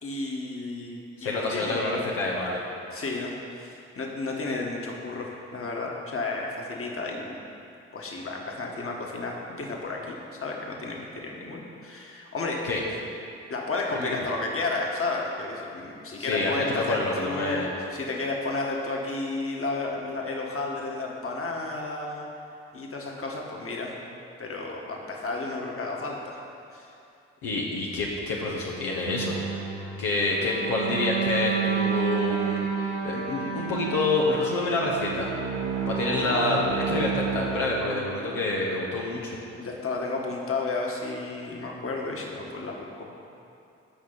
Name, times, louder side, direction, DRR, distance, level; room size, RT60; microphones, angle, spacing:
voice 1, 0.0-2.1 2.9-7.4 7.9-12.7 13.5-22.3 22.7-24.0 24.4-26.5 26.7-26.9 39.6-43.1, left 3 dB, 40° left, -1 dB, 1.8 m, -32 dB
voice 2, 1.2-2.6 12.6-12.8 13.9-14.3 16.2-17.7 27.4-29.3 30.0-35.3 35.9-39.3, left 2 dB, 75° left, -4 dB, 1.3 m, -27 dB
sound 1, 29.1-38.3, right 7 dB, 65° right, 1.9 m, -30 dB
15.0 x 5.4 x 4.2 m, 2.6 s
hypercardioid pair, 45°, 34 cm